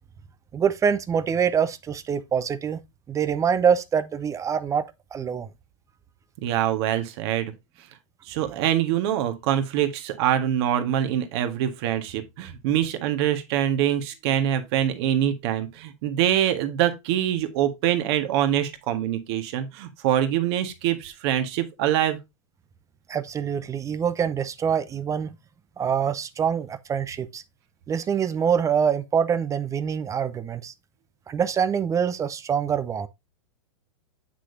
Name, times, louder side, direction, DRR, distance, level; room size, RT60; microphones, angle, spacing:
voice 1, 0.5-2.8 3.1-4.8 5.1-5.5 23.1-25.3 25.8-27.4 27.9-30.7 31.3-33.1, right 7 dB, 20° right, 0.6 m, -25 dB
voice 2, 6.4-7.5 8.3-22.2, right 11 dB, 50° right, 1.6 m, -24 dB
7.7 x 6.1 x 2.7 m
hypercardioid pair, 110°, 17 cm